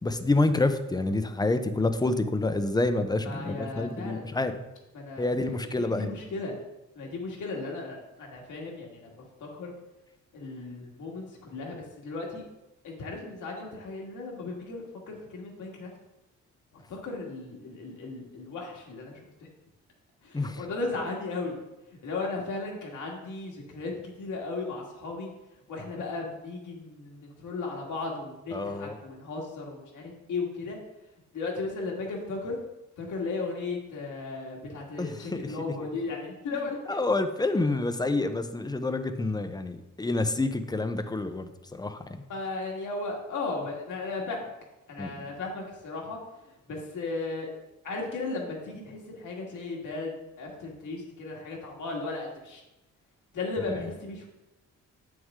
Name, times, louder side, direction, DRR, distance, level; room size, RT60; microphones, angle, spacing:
voice 1, 0.0-4.5 5.2-6.1 20.3-20.6 28.5-29.0 35.0-35.5 36.9-42.1 45.0-45.1, left 2 dB, 15° left, 9 dB, 0.6 m, -28 dB
voice 2, 3.2-4.3 4.9-6.6 6.9-9.7 10.3-12.4 12.8-15.9 16.7-19.5 20.2-21.6 22.0-25.3 25.7-30.8 31.3-32.6 33.0-37.0 37.5-37.6 42.3-44.5 44.9-46.2 46.4-47.5 47.8-52.6 53.3-54.3, left 3 dB, 80° left, -1 dB, 2.0 m, -36 dB
7.9 x 6.3 x 3.7 m, 0.99 s
cardioid pair, 100°, 30 cm